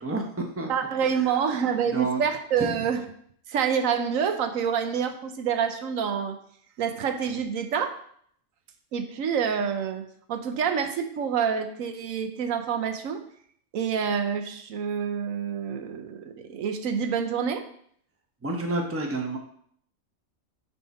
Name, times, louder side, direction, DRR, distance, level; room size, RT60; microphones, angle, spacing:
voice 1, 0.0-0.7 1.1-1.4 1.9-2.2 2.6-2.8 18.4-19.4, right 2 dB, 10° right, 2 dB, 0.8 m, -30 dB
voice 2, 0.7-3.0 3.5-6.4 6.8-8.0 8.9-13.2 13.7-17.7, right 7 dB, 85° right, 7 dB, 1.1 m, -27 dB
9.8 x 3.6 x 4.2 m, 0.64 s
omnidirectional pair, 1.4 m